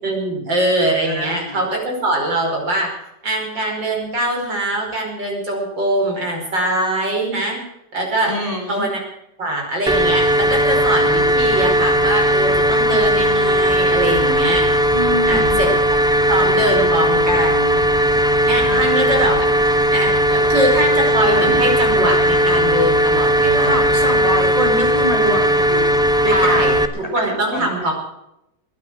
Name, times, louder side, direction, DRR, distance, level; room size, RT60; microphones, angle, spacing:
voice 1, 0.0-2.9 3.2-7.6 7.9-8.4 8.7-9.0 9.4-14.9 15.3-15.8 16.3-17.9 18.4-19.4 19.9-23.9 26.3-27.9, right 1 dB, 80° right, 0 dB, 5.9 m, -22 dB
voice 2, 1.1-1.7 8.2-8.9 14.9-15.7 18.7-19.0 23.7-26.6 27.0-27.9, equal, 20° left, 2 dB, 3.7 m, -26 dB
Quarry Machine Hum, 9.9-26.9, equal, 5° right, 0.5 m, -17 dB
21.0 x 9.6 x 6.3 m, 0.83 s
omnidirectional pair, 1.9 m